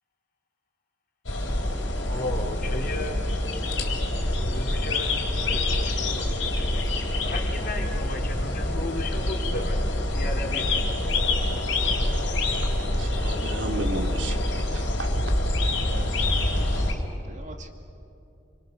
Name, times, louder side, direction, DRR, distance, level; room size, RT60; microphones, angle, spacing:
sound 1, 1.2-16.9, left 1 dB, 90° left, 3.8 m, -26 dB
voice 1, 2.1-3.3 4.5-10.9, left 2 dB, 55° left, 1 dB, 3.2 m, -35 dB
voice 2, 12.5-15.3, right 2 dB, 85° right, 3 dB, 2.3 m, -35 dB
voice 3, 15.8-17.7, right 2 dB, 45° right, 4 dB, 2.1 m, -46 dB
29.0 x 24.0 x 6.7 m, 2.7 s
head